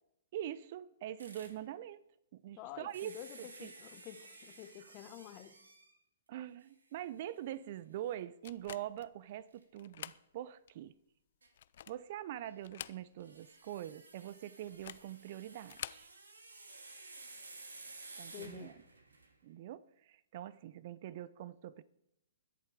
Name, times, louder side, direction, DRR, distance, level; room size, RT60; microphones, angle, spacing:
voice 1, 0.3-2.0 2.3-3.7 6.3-10.9 11.9-16.1 18.2-18.7 19.4-21.8, right 12 dB, 50° right, 0.6 m, -44 dB
sound 1, 1.2-1.6 2.9-6.0 6.6-6.7 7.2-7.3 9.5-9.6 11.4-11.5 13.2-19.4, right 3 dB, 80° right, 2.0 m, -54 dB
voice 2, 2.6-5.5 18.3-18.7, left 13 dB, 35° left, 1.1 m, -50 dB
sound 2, 8.4-9.1 9.8-10.2 10.7-10.8 11.5-12.1 12.6-13.4 13.6-13.7 14.7-15.1 15.6-16.1, left 10 dB, 55° left, 0.5 m, -47 dB
21.0 x 7.5 x 4.9 m
figure-of-eight pair, 120°, 0 cm